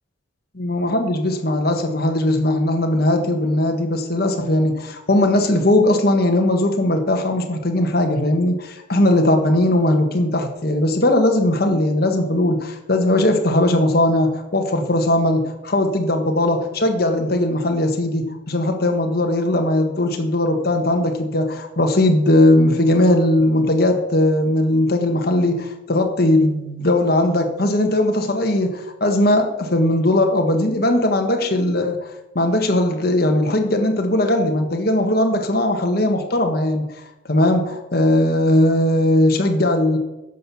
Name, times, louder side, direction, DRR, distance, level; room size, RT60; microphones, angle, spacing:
voice 1, 0.5-36.9 37.2-40.0, left 1 dB, 50° left, 4 dB, 1.5 m, -19 dB
10.5 x 6.6 x 7.0 m, 0.99 s
head